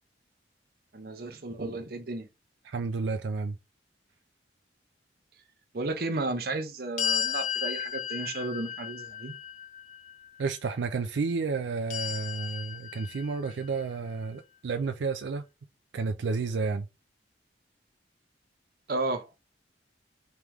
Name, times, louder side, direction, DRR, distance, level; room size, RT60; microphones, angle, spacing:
voice 1, 0.9-2.3 5.7-9.3 18.9-19.4, right 2 dB, 55° right, 0.7 m, -33 dB
voice 2, 2.6-3.6 10.4-15.4 15.9-16.9, right 4 dB, 85° right, 0.4 m, -31 dB
sound 1, 7.0-10.1 11.9-13.7, left 9 dB, 40° left, 0.4 m, -34 dB
3.3 x 3.0 x 3.4 m
head